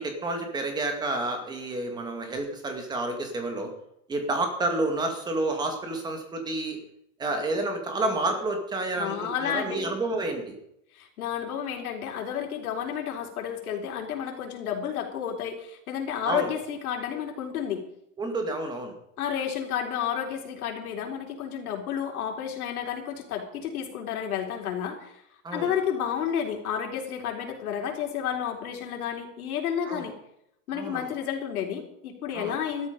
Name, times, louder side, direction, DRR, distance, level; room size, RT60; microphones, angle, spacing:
voice 1, 0.0-3.7 4.1-6.8 7.2-10.5 16.3-16.5 18.2-19.0 25.4-25.7 29.9-30.0 30.7-31.1 32.3-32.6, right 2 dB, 10° right, 4 dB, 2.2 m, -29 dB
voice 2, 9.0-9.8 10.9-17.8 19.2-25.1 25.5-30.1 30.7-32.9, left 8 dB, 80° left, 2 dB, 4.2 m, -31 dB
14.5 x 13.0 x 5.2 m, 0.75 s
supercardioid pair, 175°, 43 cm